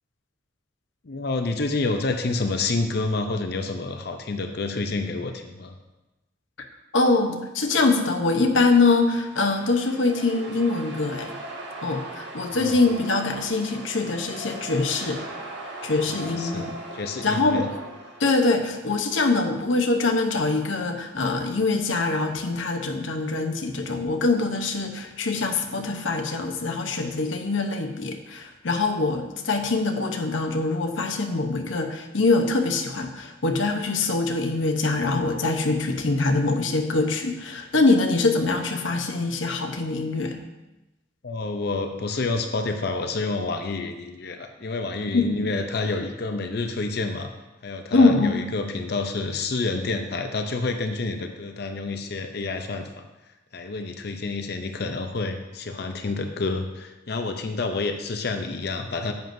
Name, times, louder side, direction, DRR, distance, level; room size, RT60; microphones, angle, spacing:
voice 1, 1.1-5.7 12.7-12.8 16.3-17.7 41.2-47.3 47.6-53.0 53.5-59.1, left 3 dB, 55° left, 6 dB, 0.6 m, -28 dB
voice 2, 6.9-11.3 11.8-15.2 15.8-16.7 17.2-17.7 18.2-40.4 45.1-45.3 47.9-48.5, left 3 dB, 85° left, 5 dB, 0.8 m, -23 dB
sound 1, 8.8-18.6, right 2 dB, 70° right, 1.6 m, -39 dB
10.5 x 7.6 x 2.6 m, 1.0 s
head